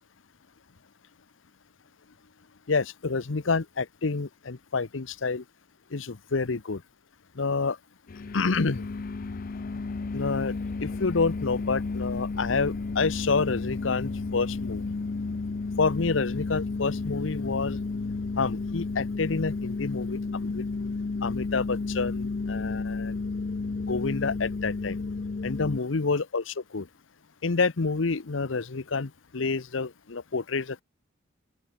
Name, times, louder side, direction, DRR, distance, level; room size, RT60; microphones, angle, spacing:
voice 1, 2.7-5.4 5.9-6.8 7.4-7.8 8.3-8.9 10.1-10.5 10.8-15.0 15.8-17.8 18.4-20.6 21.2-23.2 23.9-25.0 25.4-26.9 27.4-30.8, left 4 dB, 80° left, 0.9 m, -28 dB
sound 1, 8.1-25.8, left 3 dB, 45° left, 0.5 m, -32 dB
open air
head